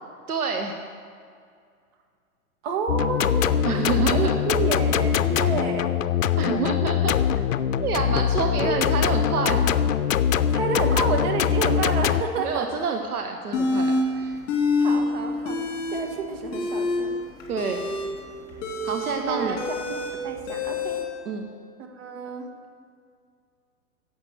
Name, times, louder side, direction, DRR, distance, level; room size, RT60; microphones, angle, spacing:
voice 1, 0.3-0.8 3.6-4.4 6.4-7.2 7.8-9.7 12.4-14.4 17.5-17.8 18.8-19.6 21.2-21.5, right 5 dB, 75° right, 3 dB, 1.3 m, -28 dB
voice 2, 2.6-6.0 6.8-7.3 8.6-8.9 10.5-12.7 14.8-15.6 15.9-17.1 19.2-19.6 19.9-21.0 21.9-22.5, right 4 dB, 40° right, 3 dB, 2.0 m, -30 dB
sound 1, 2.9-12.2, left 9 dB, 60° left, 0.6 m, -23 dB
sound 2, 13.5-14.0 14.5-15.0 15.3-16.0 16.4-21.0, left 3 dB, 30° left, 2.8 m, -26 dB
11.0 x 7.4 x 7.8 m, 2.2 s
figure-of-eight pair, 115°, 45 cm